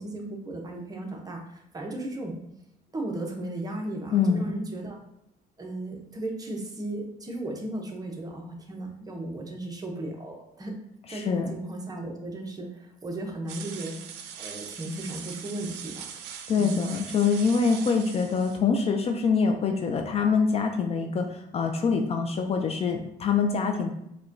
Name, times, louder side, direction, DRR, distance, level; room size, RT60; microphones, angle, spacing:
voice 1, 0.0-2.4 2.9-5.0 5.6-10.8 11.1-16.1 16.6-16.8, right 1 dB, 20° right, 1 dB, 0.7 m, -35 dB
voice 2, 4.1-4.5 11.1-11.5 16.5-23.9, left 5 dB, 40° left, 5 dB, 0.4 m, -25 dB
sound 1, 13.5-18.6, right 8 dB, 80° right, 0.4 m, -41 dB
4.8 x 2.2 x 2.6 m, 0.79 s
cardioid pair, 110°, 17 cm